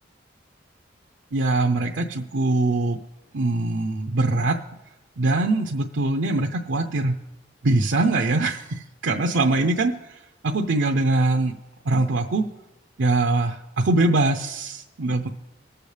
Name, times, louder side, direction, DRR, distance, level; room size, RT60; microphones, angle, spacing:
voice 1, 1.3-3.0 3.3-4.6 5.2-7.1 7.6-11.5 11.8-12.4 13.0-15.3, right 2 dB, 85° right, 3 dB, 0.6 m, -22 dB
19.5 x 6.8 x 3.3 m, 0.98 s
head